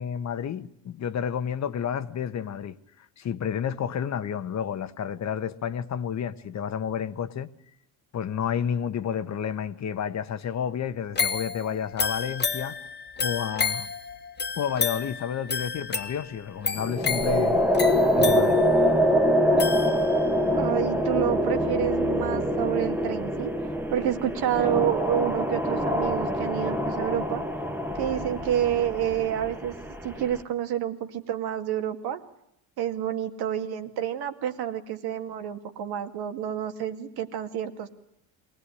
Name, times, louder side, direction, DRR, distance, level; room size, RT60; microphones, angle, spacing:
voice 1, 0.0-7.5 8.1-12.8 13.2-13.9 14.5-17.6 18.1-18.6, left 8 dB, 45° left, 1.2 m, -30 dB
sound 1, 11.2-20.4 20.9-21.0, left 5 dB, 25° left, 1.7 m, -31 dB
sound 2, 16.8-30.4, equal, 5° right, 1.7 m, -25 dB
voice 2, 20.5-23.5 23.9-27.4 28.0-29.7 30.0-32.2 32.8-37.9, right 10 dB, 70° right, 2.3 m, -29 dB
23.0 x 18.5 x 9.9 m
cardioid pair, 110°, 40 cm